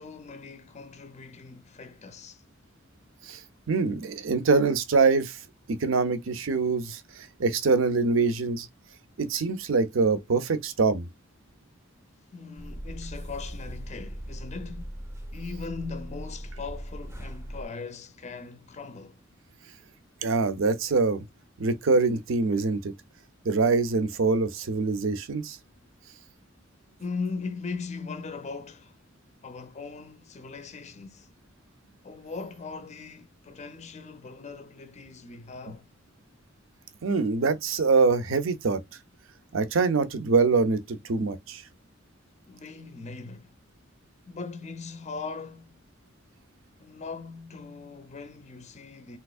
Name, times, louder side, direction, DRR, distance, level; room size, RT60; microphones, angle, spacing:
voice 1, 0.0-2.4 12.3-15.0 15.3-19.2 27.0-29.0 29.4-31.3 32.0-35.9 42.5-43.5 44.3-45.9 46.8-49.2, left 4 dB, 35° left, 0.5 m, -39 dB
voice 2, 3.7-5.4 5.7-8.7 9.2-11.1 20.2-21.2 21.6-22.9 23.4-25.6 37.0-38.8 39.5-41.6, right 4 dB, 70° right, 0.6 m, -24 dB
sound 1, 12.6-17.6, equal, 10° right, 0.6 m, -39 dB
3.4 x 2.9 x 2.4 m
head